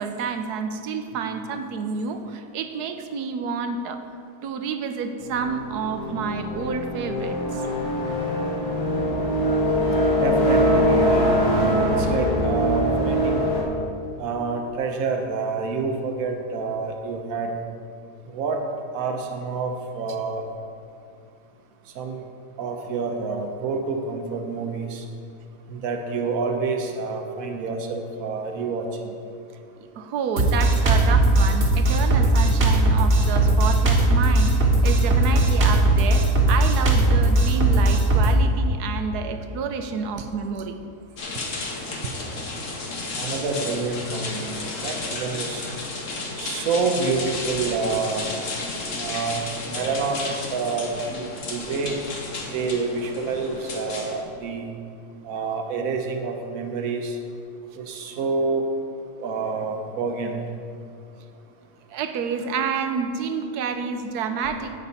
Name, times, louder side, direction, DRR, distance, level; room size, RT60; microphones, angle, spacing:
voice 1, 0.0-4.0 4.4-7.6 29.9-40.8 42.0-42.1 61.9-64.8, right 5 dB, 85° right, 8 dB, 1.3 m, -29 dB
sound 1, 5.2-13.6, equal, 80° left, 2.0 m, -22 dB
voice 2, 9.9-11.4 11.8-13.4 14.2-17.5 18.3-18.6 18.9-20.4 21.9-22.2 22.6-25.0 25.7-29.1 43.2-45.7 46.4-48.3 49.0-52.0 52.5-54.7 55.2-57.2 57.8-58.6 59.2-60.4, right 4 dB, 70° right, 3 dB, 1.3 m, -28 dB
Drum kit, 30.4-38.3, right 2 dB, 50° right, 1.6 m, -18 dB
sound 2, 41.2-54.2, left 3 dB, 55° left, 1.5 m, -32 dB
10.5 x 9.0 x 4.1 m, 2.4 s
omnidirectional pair, 1.6 m